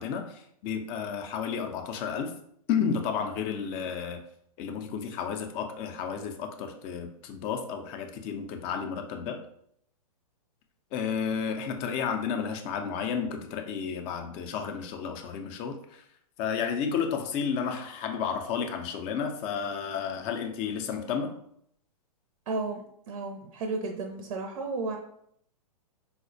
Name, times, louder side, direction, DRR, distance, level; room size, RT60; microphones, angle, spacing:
voice 1, 0.0-2.3 2.7-4.2 4.6-9.4 10.9-16.0 16.4-21.3, left 7 dB, 30° left, 5 dB, 0.4 m, -32 dB
voice 2, 22.5-22.8 23.1-25.0, right 3 dB, 65° right, 3 dB, 0.5 m, -33 dB
4.1 x 2.1 x 2.5 m, 0.70 s
hypercardioid pair, 130°, 20 cm